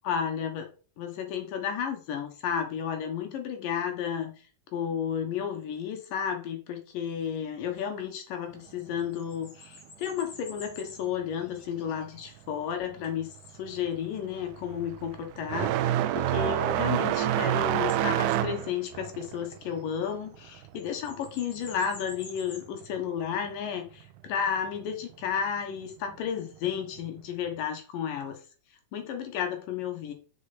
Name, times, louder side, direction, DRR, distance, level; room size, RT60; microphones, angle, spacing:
voice 1, 0.1-0.7 1.0-4.4 4.7-28.4 28.9-30.1, left 8 dB, 75° left, 4 dB, 2.9 m, -32 dB
sound 1, 7.1-7.2 8.6-12.7 13.0-13.3 14.7-14.8 19.2-20.5 20.8-22.7 24.5-24.9, left 4 dB, 50° left, 3.1 m, -50 dB
sound 2, 12.9-13.2 13.6-21.9 22.2-23.2 24.2-24.3 25.1-25.2 26.9-27.1, right 12 dB, 80° right, 2.0 m, -28 dB
6.7 x 6.7 x 5.8 m, 0.38 s
omnidirectional pair, 4.0 m